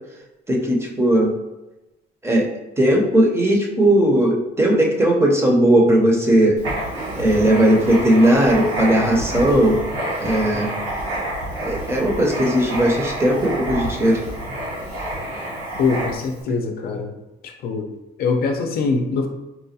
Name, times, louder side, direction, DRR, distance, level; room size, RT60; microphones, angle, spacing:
voice 1, 0.5-1.3 2.2-2.5 2.8-6.6 7.2-9.8 10.2-10.7 11.6-14.2, right 1 dB, 15° right, -1 dB, 0.6 m, -17 dB
Writing, 6.6-16.4, right 1 dB, 90° right, 1.2 m, -28 dB
voice 2, 15.8-17.1 17.4-17.9 18.2-19.3, left 4 dB, 65° left, 3 dB, 0.5 m, -23 dB
4.1 x 2.2 x 2.7 m, 1.0 s
cardioid pair, 110°, 17 cm